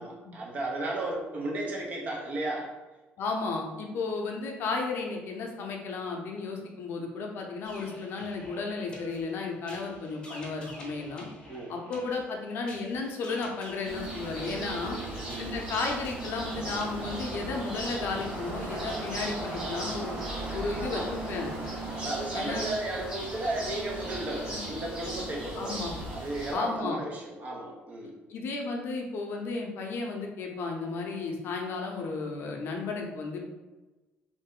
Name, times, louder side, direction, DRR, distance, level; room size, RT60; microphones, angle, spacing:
voice 1, 0.0-2.7 11.5-11.7 14.7-15.5 20.5-21.1 21.9-28.1, right 2 dB, 35° right, -1 dB, 0.7 m, -35 dB
voice 2, 3.2-11.3 11.7-15.0 15.4-20.2 20.5-21.5 22.3-22.7 24.5-24.6 25.6-25.9 26.5-27.0 28.3-33.5, left 4 dB, 55° left, 1 dB, 0.6 m, -33 dB
sound 1, 7.6-16.9, right 1 dB, 20° left, 0.8 m, -48 dB
sound 2, 13.8-26.5, right 1 dB, 20° right, 1.1 m, -37 dB
sound 3, 16.4-22.1, right 2 dB, 75° right, 0.6 m, -43 dB
3.2 x 2.6 x 3.6 m, 1.2 s
cardioid pair, 160°, 4 cm